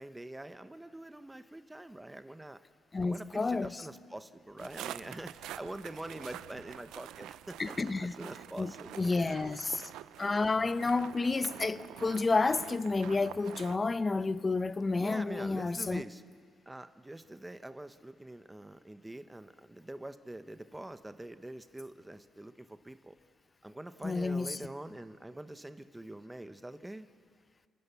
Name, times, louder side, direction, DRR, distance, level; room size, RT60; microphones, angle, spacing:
voice 1, 0.0-2.6 3.0-9.4 14.9-16.2 16.7-23.2 23.6-27.1, right 1 dB, 10° right, 0.9 m, -45 dB
voice 2, 2.9-3.9 7.6-8.1 8.6-9.9 10.2-16.0 24.0-24.6, left 3 dB, 25° left, 0.7 m, -30 dB
sound 1, 4.6-13.8, right 12 dB, 85° right, 0.4 m, -47 dB
29.5 x 12.5 x 8.3 m
cardioid pair, 90°, 0 cm